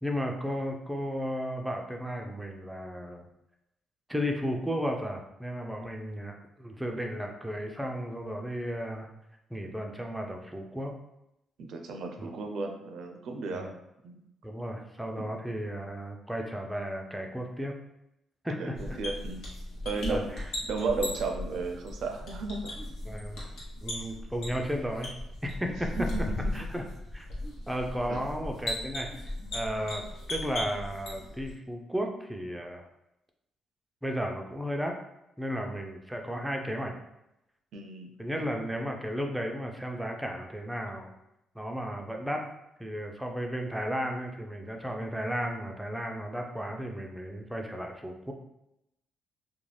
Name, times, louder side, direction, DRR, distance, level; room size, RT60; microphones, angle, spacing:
voice 1, 0.0-3.2 4.1-9.1 9.5-10.9 12.2-12.3 13.5-13.7 14.4-17.7 18.4-19.0 20.1-20.5 23.1-23.4 23.8-25.1 25.4-25.9 26.5-26.8 27.1-27.3 27.7-29.1 29.5-30.0 30.3-32.8 34.0-34.9 35.4-36.9 38.2-41.1 41.6-42.5 42.8-48.3, equal, 5° right, 2 dB, 0.4 m, -34 dB
voice 2, 11.6-13.7 14.0-14.2 15.2-15.3 18.6-19.6 19.8-20.4 20.7-22.7 23.4-23.5 26.0-26.5 28.1-28.2 37.7-38.1, right 3 dB, 70° right, 3 dB, 0.4 m, -34 dB
sound 1, 18.7-31.5, left 1 dB, 70° left, 0.9 m, -37 dB
2.4 x 2.1 x 3.2 m, 0.86 s
cardioid pair, 90°, 0 cm